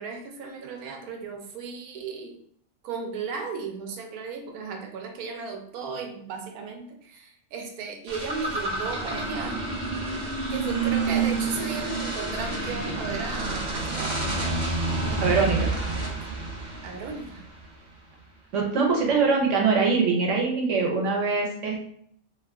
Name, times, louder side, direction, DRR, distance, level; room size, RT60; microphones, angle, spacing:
voice 1, 0.0-2.4 2.8-9.6 10.5-14.6 15.0-15.3 16.8-17.4, right 5 dB, 85° right, 3 dB, 1.1 m, -35 dB
sound 1, 8.1-17.6, right 3 dB, 45° right, 0.6 m, -29 dB
voice 2, 15.2-15.7 18.5-21.8, right 4 dB, 60° right, 0 dB, 1.0 m, -23 dB
2.5 x 2.2 x 3.4 m, 0.65 s
omnidirectional pair, 1.5 m